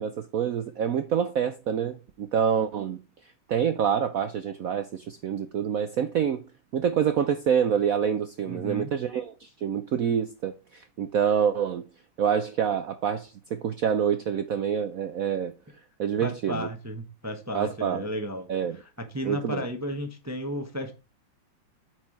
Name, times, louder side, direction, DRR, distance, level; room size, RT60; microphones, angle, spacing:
voice 1, 0.0-3.0 3.5-6.4 6.7-11.8 12.2-15.5 16.0-16.7 17.5-18.1 18.5-18.8 19.2-19.7, right 8 dB, 85° right, 0.7 m, -27 dB
voice 2, 8.4-8.9 16.2-18.5 18.7-20.9, equal, 20° right, 0.5 m, -34 dB
8.7 x 4.8 x 4.5 m
omnidirectional pair, 2.3 m